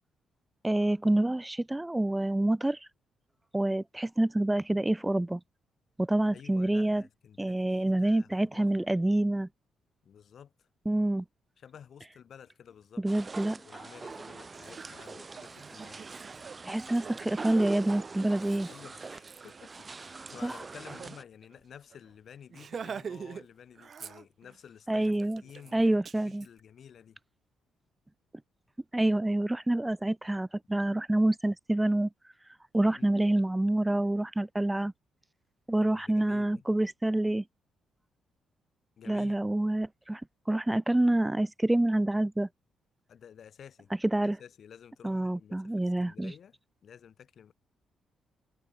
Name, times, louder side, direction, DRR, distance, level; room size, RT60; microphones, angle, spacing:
voice 1, 0.6-2.9 3.5-5.4 6.0-7.0 7.4-9.5 10.9-11.2 13.0-13.6 16.6-18.7 20.4-20.5 24.9-25.4 25.7-26.5 28.9-32.1 32.7-34.9 35.7-37.4 39.1-40.2 40.5-42.5 44.1-44.4 45.0-46.3, right 1 dB, 10° right, 0.4 m, -27 dB
voice 2, 6.3-8.7 10.0-10.7 11.6-16.0 18.7-25.2 25.4-25.9 26.2-27.2 32.8-33.1 35.9-36.6 39.0-39.4 43.1-46.6 46.8-47.5, left 8 dB, 60° left, 1.8 m, -52 dB
sound 1, 13.1-21.2, right 4 dB, 30° right, 2.0 m, -43 dB
Laughter, 14.1-14.2 14.5-21.2 21.5-21.6 21.9-22.1 22.5-23.5 23.8-24.6 25.0-26.5, right 6 dB, 50° right, 4.5 m, -46 dB
cardioid pair, 75°, 0 cm